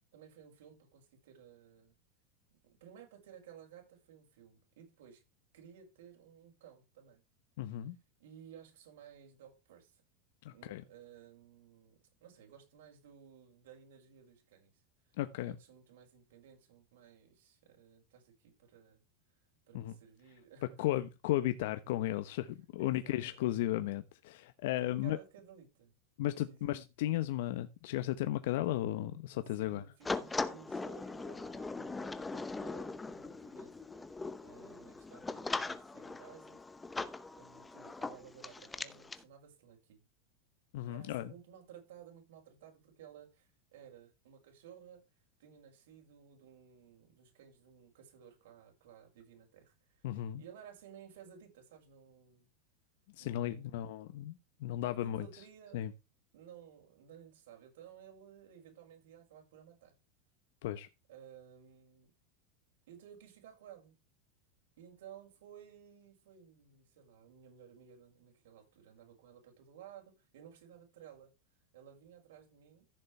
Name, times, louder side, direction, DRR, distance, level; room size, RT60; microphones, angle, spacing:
voice 1, 0.1-1.9 2.6-5.2 5.5-7.2 8.2-10.0 10.5-14.8 15.3-19.0 19.7-20.9 22.8-23.2 24.8-25.9 26.3-26.7 29.5-33.7 34.0-36.7 37.3-40.1 40.9-45.0 45.4-50.1 50.4-52.5 53.2-53.8 54.8-55.8 56.3-59.9 61.1-62.1 62.9-64.0 64.8-71.3 71.7-72.9, right 8 dB, 80° right, 6.3 m, -56 dB
voice 2, 7.6-8.0 10.4-10.8 15.2-15.5 19.7-19.9 20.8-25.2 26.2-29.8 40.7-41.3 50.0-50.4 53.2-55.3 55.7-55.9 60.6-60.9, left 14 dB, 65° left, 1.0 m, -35 dB
sound 1, 30.0-39.2, left 3 dB, 10° left, 0.8 m, -40 dB
15.0 x 7.1 x 3.4 m
supercardioid pair, 160°, 0 cm